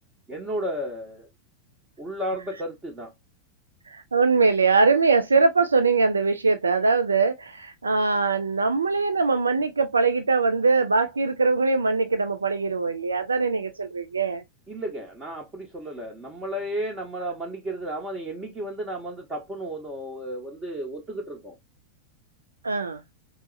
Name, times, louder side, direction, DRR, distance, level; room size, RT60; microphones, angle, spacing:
voice 1, 0.3-1.3 2.0-3.1 14.7-21.5, right 1 dB, 20° right, 0.9 m, -33 dB
voice 2, 3.9-14.4 17.2-17.3 22.6-23.0, right 4 dB, 75° right, 0.3 m, -22 dB
4.4 x 2.0 x 2.4 m
figure-of-eight pair, 90°, 0 cm